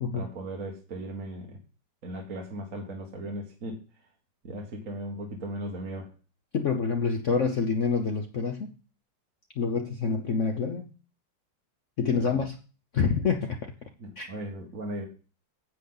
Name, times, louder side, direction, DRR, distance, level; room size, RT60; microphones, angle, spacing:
voice 1, 0.1-1.6 2.0-3.8 4.4-6.1 14.0-15.0, right 1 dB, 40° right, 0 dB, 1.8 m, -37 dB
voice 2, 6.5-8.7 9.6-10.9 12.0-12.6 12.9-13.6 14.2-14.3, left 5 dB, 60° left, 5 dB, 0.7 m, -27 dB
9.2 x 7.9 x 3.9 m, 0.35 s
omnidirectional pair, 2.3 m